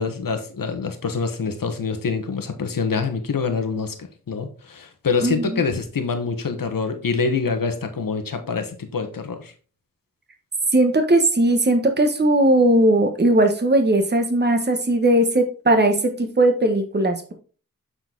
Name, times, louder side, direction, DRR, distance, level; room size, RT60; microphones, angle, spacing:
voice 1, 0.0-3.9 4.3-9.5, left 5 dB, 70° left, 6 dB, 1.3 m, -25 dB
voice 2, 5.2-5.6 10.7-17.3, right 1 dB, 30° right, 5 dB, 1.3 m, -18 dB
7.8 x 4.3 x 3.9 m, 0.38 s
cardioid pair, 55°, 34 cm